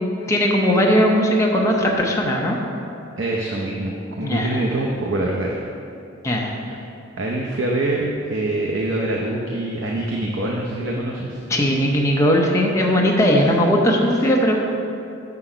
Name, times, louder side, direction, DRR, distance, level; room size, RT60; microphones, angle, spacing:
voice 1, 0.2-2.6 4.2-4.6 6.2-6.5 11.5-14.6, equal, 15° left, -2 dB, 0.8 m, -18 dB
voice 2, 3.2-5.5 6.7-6.8 7.1-11.4, right 2 dB, 60° right, -2 dB, 0.7 m, -25 dB
6.8 x 5.8 x 4.9 m, 2.6 s
head